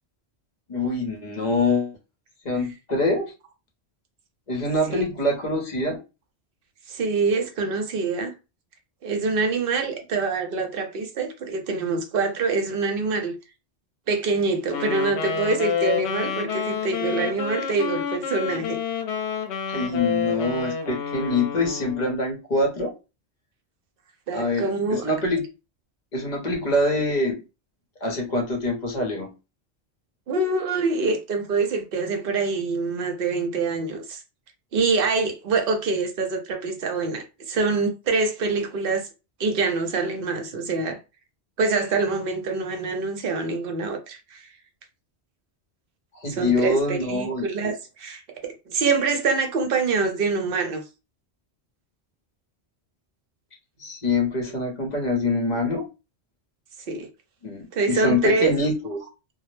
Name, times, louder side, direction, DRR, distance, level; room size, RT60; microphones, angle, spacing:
voice 1, 0.7-2.0 2.4-3.3 4.5-6.0 19.7-22.9 24.3-25.4 26.1-27.4 28.0-29.3 46.2-47.7 53.8-55.9 57.4-59.0, left 2 dB, 45° left, 0.8 m, -25 dB
voice 2, 6.9-8.3 9.0-13.4 14.1-18.8 24.3-25.1 30.3-34.2 34.7-39.1 39.4-41.0 41.6-44.5 46.3-50.8 56.9-57.1 57.7-58.5, right 4 dB, 60° right, 0.7 m, -25 dB
Wind instrument woodwind instrument, 14.7-22.2, left 7 dB, 80° left, 0.8 m, -29 dB
2.2 x 2.0 x 3.0 m
omnidirectional pair, 1.1 m